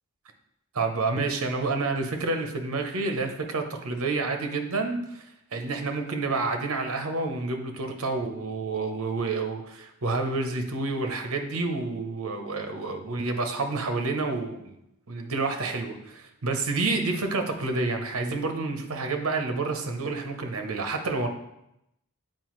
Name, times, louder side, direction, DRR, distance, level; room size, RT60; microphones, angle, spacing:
voice 1, 0.7-5.2 5.5-14.7 15.1-21.3, right 3 dB, 70° right, 5 dB, 0.8 m, -29 dB
7.7 x 4.4 x 3.1 m, 0.82 s
head